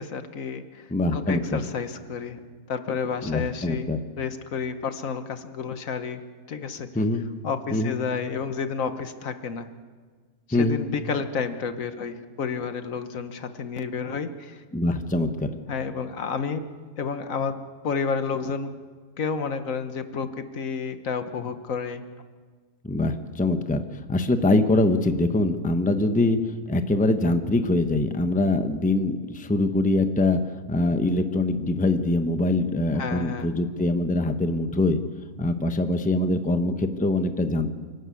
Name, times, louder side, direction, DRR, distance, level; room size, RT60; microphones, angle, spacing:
voice 1, 0.0-2.4 2.7-3.9 4.2-6.2 6.5-6.9 7.4-9.7 10.5-14.6 15.7-16.6 17.0-18.7 19.2-22.0 32.9-33.5, left 5 dB, 70° left, 9 dB, 1.5 m, -30 dB
voice 2, 0.9-1.6 3.2-4.0 6.9-7.2 7.7-7.9 10.5-10.8 14.7-15.5 22.8-26.4 26.7-30.4 30.7-35.0 35.4-37.7, left 2 dB, 5° left, 8 dB, 0.8 m, -23 dB
27.5 x 12.0 x 8.4 m, 1.5 s
omnidirectional pair, 1.5 m